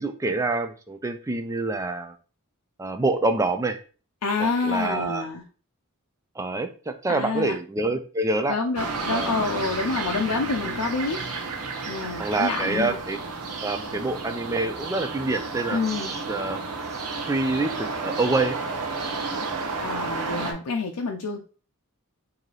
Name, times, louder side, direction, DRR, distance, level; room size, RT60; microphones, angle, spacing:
voice 1, 0.0-2.1 2.8-3.8 4.4-5.3 6.4-8.6 9.1-9.3 12.2-13.2 13.6-16.6 17.3-18.6 19.3-19.5, right 2 dB, 15° right, 8 dB, 0.3 m, -26 dB
voice 2, 4.2-5.4 7.1-7.6 8.5-11.2 11.9-13.0 15.7-16.2 19.8-21.4, left 4 dB, 85° left, 1 dB, 0.5 m, -27 dB
sound 1, 8.8-20.5, right 3 dB, 85° right, 0.7 m, -31 dB
3.1 x 2.7 x 3.8 m, 0.37 s
head